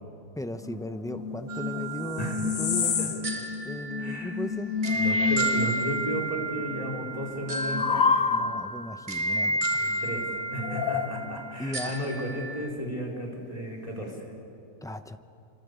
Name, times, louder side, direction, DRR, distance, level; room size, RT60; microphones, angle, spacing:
voice 1, 0.3-3.3 3.6-4.7 8.3-9.8 11.6-11.9 14.8-15.2, left 1 dB, 5° left, 9 dB, 0.5 m, -37 dB
sound 1, 0.6-6.2 6.5-8.9 10.6-11.6, left 5 dB, 65° left, 1.5 m, -29 dB
sound 2, 1.5-12.7, right 2 dB, 30° right, 1.6 m, -32 dB
voice 2, 4.0-4.3 5.0-8.1 9.8-10.3 10.5-14.3, equal, 25° left, 0 dB, 4.4 m, -34 dB
26.0 x 25.5 x 8.2 m, 2.6 s
omnidirectional pair, 1.6 m